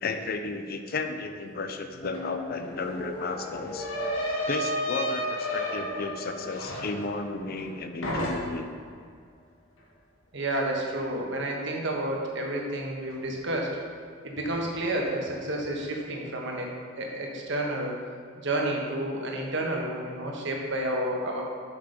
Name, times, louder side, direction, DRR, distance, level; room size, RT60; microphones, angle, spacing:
voice 1, 0.0-3.9 4.5-8.7, left 3 dB, 50° left, 6 dB, 0.6 m, -33 dB
sound 1, 1.7-6.1, left 2 dB, 30° left, 1.1 m, -41 dB
sound 2, 2.1-2.2 2.5-7.7 8.0-8.8, equal, 75° left, 1.5 m, -32 dB
voice 2, 10.3-13.7 14.2-16.7 17.0-17.9 18.4-21.4, right 1 dB, 60° right, 0 dB, 1.3 m, -30 dB
6.2 x 6.0 x 5.1 m, 2.1 s
head